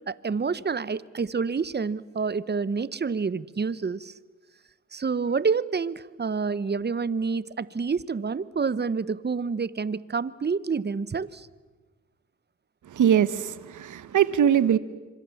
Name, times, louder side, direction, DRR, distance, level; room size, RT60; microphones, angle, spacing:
voice 1, 0.1-4.1 4.9-11.5, right 5 dB, 35° right, 19 dB, 1.0 m, -28 dB
voice 2, 12.9-14.8, right 9 dB, 75° right, 15 dB, 1.1 m, -22 dB
26.0 x 25.0 x 7.2 m, 1.3 s
cardioid pair, 55°, 31 cm